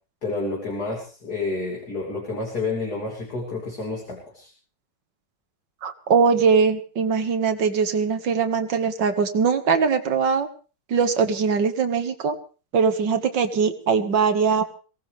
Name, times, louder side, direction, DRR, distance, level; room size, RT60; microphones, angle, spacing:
voice 1, 0.2-4.5, left 3 dB, 50° left, -1 dB, 3.7 m, -29 dB
voice 2, 5.8-10.5 10.9-12.4 12.7-14.6, right 5 dB, 60° right, 8 dB, 2.2 m, -21 dB
23.5 x 18.0 x 3.4 m, 0.37 s
omnidirectional pair, 2.2 m